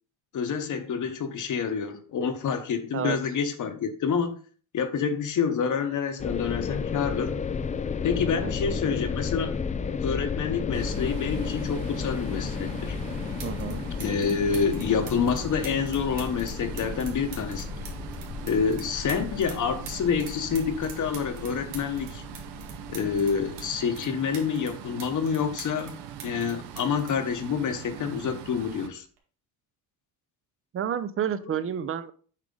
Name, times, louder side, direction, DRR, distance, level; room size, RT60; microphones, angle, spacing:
voice 1, 0.3-4.3 4.7-7.4 8.0-9.6 10.0-13.0 14.0-17.7 18.4-22.2 22.9-29.0 31.4-31.5, left 6 dB, 45° left, 1.0 m, -28 dB
sound 1, 6.2-23.8, left 5 dB, 20° left, 0.3 m, -33 dB
voice 2, 8.4-8.8 13.4-13.8 30.7-32.1, right 9 dB, 30° right, 0.6 m, -30 dB
sound 2, 10.7-28.9, right 9 dB, 70° right, 0.9 m, -42 dB
sound 3, 13.4-13.7 14.0-19.6 19.9-23.7 24.0-25.9 26.2-28.0 29.0-29.2, right 6 dB, 90° right, 2.0 m, -44 dB
7.5 x 4.8 x 3.8 m
cardioid pair, 105°, 41 cm